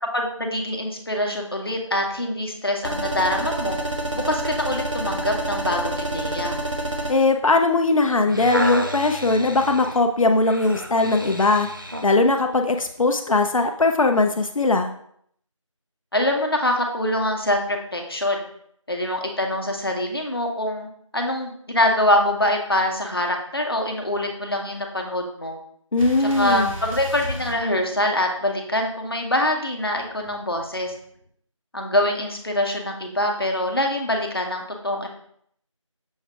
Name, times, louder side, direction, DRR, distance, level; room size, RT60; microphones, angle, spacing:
voice 1, 0.0-3.8 4.1-6.6 16.1-18.4 18.9-25.6 26.2-30.9 31.7-35.1, left 1 dB, 45° left, 2 dB, 0.8 m, -24 dB
sound 1, 2.8-7.1, right 1 dB, 65° right, 1.0 m, -27 dB
voice 2, 7.1-11.7 12.0-14.9 25.9-26.7, left 3 dB, 85° left, 5 dB, 0.5 m, -20 dB
sound 2, 8.1-12.1 12.8-12.9, equal, 40° right, 0.4 m, -31 dB
sound 3, 26.0-28.5 29.9-31.2, equal, 90° right, 1.3 m, -36 dB
6.2 x 2.3 x 3.5 m, 0.67 s
figure-of-eight pair, 180°, 17 cm